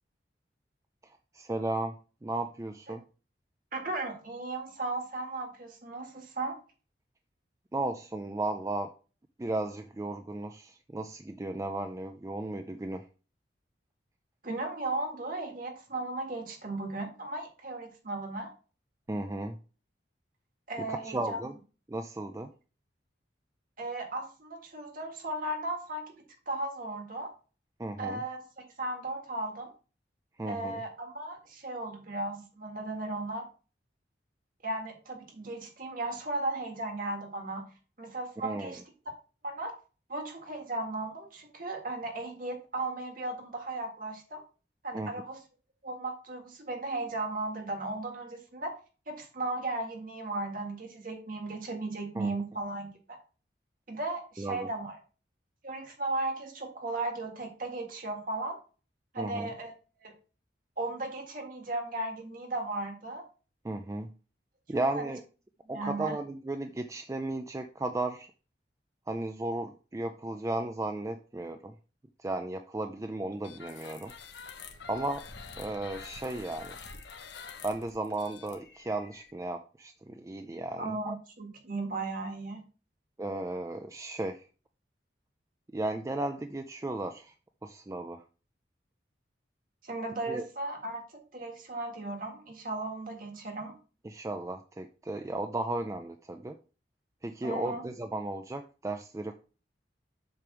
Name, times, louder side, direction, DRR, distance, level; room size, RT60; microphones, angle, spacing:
voice 1, 1.0-2.0 2.2-3.0 7.7-8.9 9.4-13.1 19.1-19.6 20.8-21.5 21.9-22.5 27.8-28.2 30.4-30.8 38.4-38.7 44.9-45.1 52.2-52.3 54.4-54.7 59.2-59.5 63.6-64.1 64.7-65.2 65.7-68.3 69.1-71.7 72.2-74.1 74.9-75.2 75.6-76.8 77.6-81.2 83.2-84.5 85.7-87.3 87.6-88.2 90.3-90.4 94.0-96.6 97.2-99.3, right 2 dB, 15° right, 7 dB, 0.4 m, -35 dB
voice 2, 3.7-6.6 14.4-18.5 20.7-21.4 23.8-26.1 26.5-27.3 28.0-29.7 30.5-33.5 34.6-37.7 38.0-39.2 39.4-39.8 40.1-44.4 44.8-45.4 45.8-48.7 49.1-53.2 53.9-55.0 55.6-58.6 59.1-59.7 60.0-60.1 60.8-63.2 64.9-65.1 65.7-66.2 80.8-82.6 89.8-93.8 97.4-97.8, right 2 dB, 50° right, 3 dB, 1.8 m, -36 dB
sound 1, 73.4-79.3, left 5 dB, 70° left, 1.1 m, -47 dB
7.7 x 3.4 x 6.0 m, 0.35 s
head